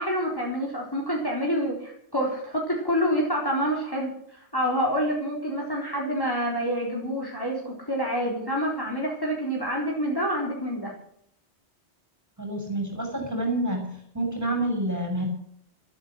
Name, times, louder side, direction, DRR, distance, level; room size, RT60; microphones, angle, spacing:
voice 1, 0.0-10.9, equal, 20° left, -2 dB, 3.9 m, -27 dB
voice 2, 12.4-15.2, right 1 dB, 15° right, 2 dB, 6.8 m, -28 dB
14.5 x 13.5 x 6.3 m, 0.70 s
omnidirectional pair, 1.1 m